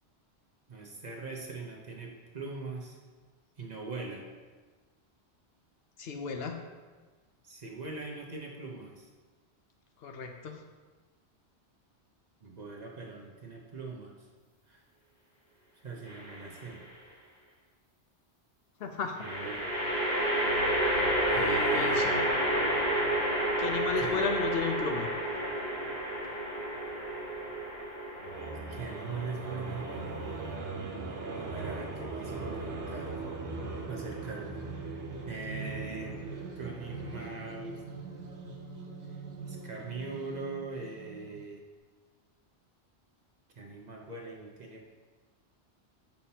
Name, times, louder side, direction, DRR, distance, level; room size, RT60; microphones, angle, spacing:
voice 1, 0.7-3.0 3.6-4.3 7.4-9.1 12.4-14.3 14.7-14.8 15.8-16.8 19.2-19.7 21.3-22.1 24.0-24.2 28.5-29.9 31.3-33.1 33.9-34.6 35.3-36.2 36.6-37.8 39.1-39.2 39.5-41.6 43.6-44.9, right 3 dB, 45° right, 0 dB, 0.7 m, -41 dB
voice 2, 6.0-6.6 10.0-10.6 18.8-19.3 21.3-22.2 23.6-25.1, left 5 dB, 65° left, 4 dB, 0.8 m, -34 dB
sound 1, 16.1-16.6 19.2-30.5, right 1 dB, 50° left, 1.7 m, -30 dB
sound 2, 28.2-41.4, right 3 dB, 90° right, 1.2 m, -40 dB
7.0 x 5.6 x 2.8 m, 1.4 s
omnidirectional pair, 1.1 m